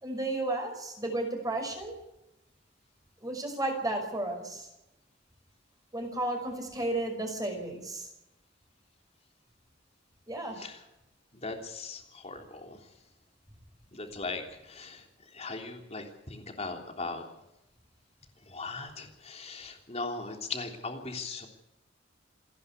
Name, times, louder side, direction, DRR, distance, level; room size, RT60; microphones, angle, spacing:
voice 1, 0.0-1.9 3.2-4.6 5.9-8.0 10.3-10.6, right 2 dB, 20° right, 3 dB, 5.7 m, -33 dB
voice 2, 11.4-12.8 13.9-15.0 15.3-17.2 18.5-21.5, left 3 dB, 35° left, 4 dB, 3.3 m, -39 dB
28.0 x 11.0 x 8.3 m, 0.92 s
head